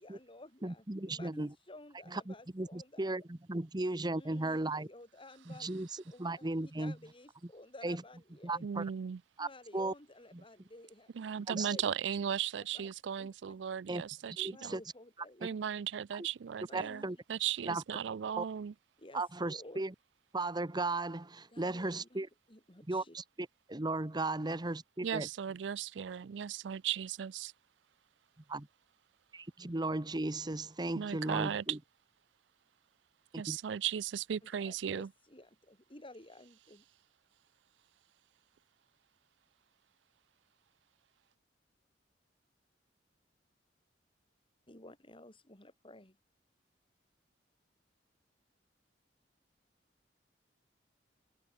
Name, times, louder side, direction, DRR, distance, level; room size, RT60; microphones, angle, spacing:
voice 1, 0.0-3.0 4.1-8.6 9.4-11.1 11.5-12.0 12.7-13.6 14.5-15.6 16.8-17.1 19.0-19.8 21.5-22.2 22.5-23.2 34.5-36.8 44.7-46.2, left 2 dB, 30° left, 5.7 m, -54 dB
voice 2, 0.6-1.5 2.1-4.9 5.5-7.0 7.8-8.0 8.4-8.8 9.4-9.9 10.3-10.4 11.5-11.7 13.9-14.0 14.3-14.8 16.1-16.3 16.7-17.2 17.6-17.8 18.4-18.5 19.1-19.9 20.3-22.3 22.9-25.3 28.5-28.7 29.3-31.8 33.3-33.6, right 2 dB, 25° right, 1.1 m, -36 dB
voice 3, 8.6-9.2 11.1-14.8 15.4-17.0 17.3-18.7 25.0-27.5 30.9-31.6 33.3-35.1, right 8 dB, 80° right, 0.4 m, -36 dB
head